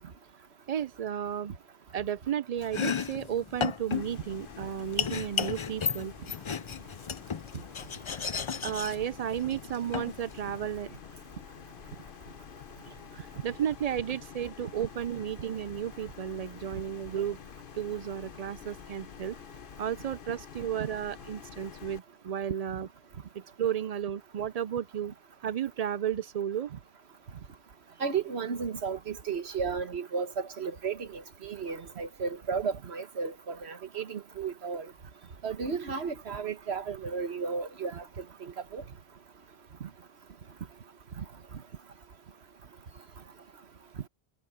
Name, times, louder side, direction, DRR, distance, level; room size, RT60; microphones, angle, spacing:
voice 1, 0.7-1.5 1.9-6.1 8.6-10.9 13.1-17.4 17.7-19.4 19.8-22.9 23.3-25.1 25.4-26.7, right 9 dB, 55° right, 0.4 m, -33 dB
Domestic sounds home sounds, 2.6-10.8, left 6 dB, 40° left, 0.4 m, -35 dB
sound 1, 3.9-22.0, left 8 dB, 55° left, 0.9 m, -48 dB
voice 2, 28.0-34.9 35.4-38.0 38.4-38.8 39.8-39.9 41.2-41.3, right 5 dB, 70° right, 1.5 m, -34 dB
omnidirectional pair, 1.1 m